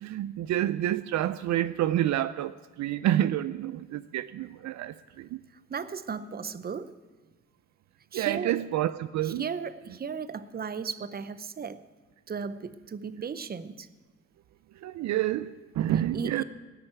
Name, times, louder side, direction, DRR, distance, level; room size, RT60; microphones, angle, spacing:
voice 1, 0.0-5.4 8.1-9.5 14.8-16.4, right 12 dB, 65° right, 0.5 m, -28 dB
voice 2, 5.7-6.9 8.1-8.6 9.2-11.8 12.3-13.9 16.1-16.4, right 6 dB, 30° right, 0.7 m, -35 dB
16.5 x 6.5 x 9.1 m
cardioid pair, 90°, 30 cm